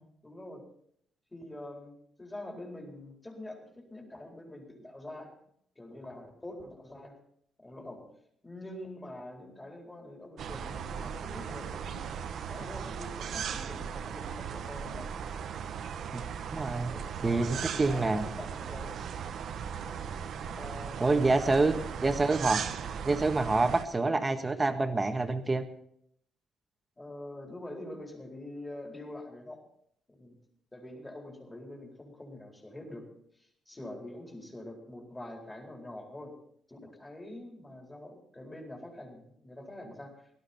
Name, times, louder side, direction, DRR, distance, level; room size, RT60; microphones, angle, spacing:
voice 1, 0.2-0.6 1.3-5.3 5.8-7.2 7.6-8.1 8.4-12.0 12.5-15.1 16.8-18.9 19.8-21.0 21.3-21.9 27.0-29.6 30.1-30.4 30.7-33.1 33.3-36.3 36.7-40.2, left 1 dB, 15° left, 0 dB, 4.3 m, -45 dB
sound 1, 10.4-23.8, right 7 dB, 65° right, 1.1 m, -37 dB
voice 2, 16.5-16.9 17.2-18.3 21.0-21.7 22.0-22.6 23.0-25.6, right 3 dB, 25° right, 6 dB, 1.6 m, -27 dB
17.5 x 13.0 x 4.4 m, 0.69 s
cardioid pair, 90°, 0 cm